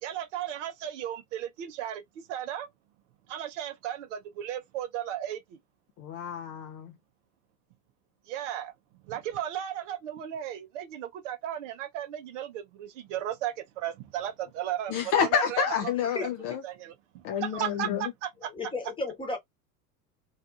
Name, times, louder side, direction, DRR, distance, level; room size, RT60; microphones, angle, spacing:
voice 1, 0.0-2.0 2.3-2.7 3.3-5.4 8.3-8.7 9.1-15.9 16.2-16.3 16.6-18.5, right 11 dB, 55° right, 0.7 m, -35 dB
voice 2, 6.0-6.9 14.9-16.6 17.2-18.0, left 8 dB, 35° left, 0.4 m, -28 dB
voice 3, 18.5-19.4, left 3 dB, 10° left, 1.0 m, -33 dB
2.6 x 2.3 x 2.4 m
figure-of-eight pair, 75°, 46 cm